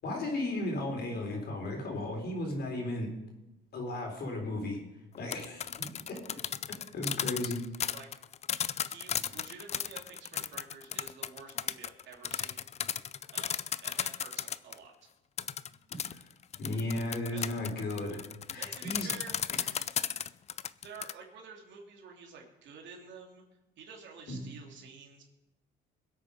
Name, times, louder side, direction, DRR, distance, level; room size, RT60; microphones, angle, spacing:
voice 1, 0.0-3.1 3.7-4.8 5.2-5.7 6.1-6.4 6.7-7.9 16.1-16.3 16.6-18.2 18.5-19.1 19.6-19.7 24.3-24.4, left 1 dB, 50° left, 2 dB, 4.4 m, -35 dB
sound 1, 5.1-14.8 15.4-21.1, left 8 dB, 35° left, 0.4 m, -35 dB
voice 2, 8.8-12.7 13.3-14.9 17.3-17.5 18.5-19.4 20.8-23.4 23.8-25.2, right 5 dB, 65° right, 0 dB, 3.2 m, -49 dB
21.5 x 8.5 x 5.1 m, 0.98 s
cardioid pair, 115°, 21 cm